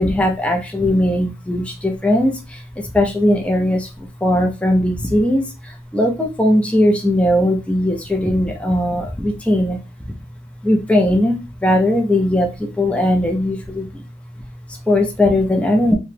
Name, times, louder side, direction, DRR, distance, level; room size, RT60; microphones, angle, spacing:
voice 1, 0.0-10.2 10.6-14.1 14.5-15.9, left 1 dB, 5° left, 1 dB, 0.4 m, -19 dB
2.8 x 2.1 x 3.2 m, 0.27 s
head